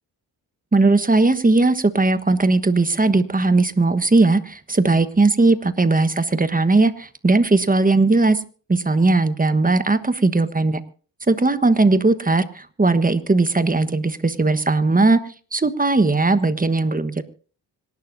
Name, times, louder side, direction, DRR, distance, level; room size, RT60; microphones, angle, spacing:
voice 1, 0.7-8.4 8.7-10.8 11.3-15.2 15.5-17.2, right 3 dB, 20° right, 12 dB, 1.3 m, -18 dB
26.0 x 12.0 x 2.7 m, 0.39 s
cardioid pair, 70°, 43 cm